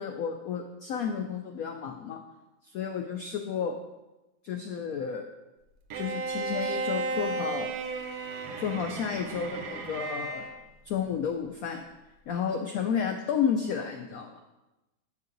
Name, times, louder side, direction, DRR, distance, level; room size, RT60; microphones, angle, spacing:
voice 1, 0.0-2.2 2.6-3.8 4.4-5.2 5.9-7.8 8.6-10.5 10.8-11.8 12.3-14.4, left 7 dB, 90° left, 4 dB, 0.7 m, -32 dB
Bowed string instrument, 5.9-10.6, right 3 dB, 60° right, 1.1 m, -34 dB
7.6 x 5.5 x 3.9 m, 1.0 s
omnidirectional pair, 2.1 m